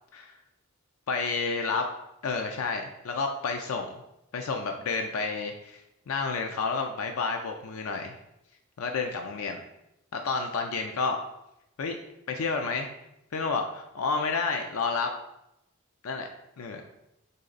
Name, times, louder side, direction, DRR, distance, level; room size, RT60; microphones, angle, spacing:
voice 1, 1.1-1.9 2.2-4.0 4.3-8.1 8.8-9.6 10.1-11.2 11.8-12.0 12.3-12.9 13.3-15.1 16.0-16.3 16.6-16.8, left 4 dB, 90° left, 4 dB, 0.4 m, -30 dB
4.0 x 3.2 x 3.9 m, 0.85 s
head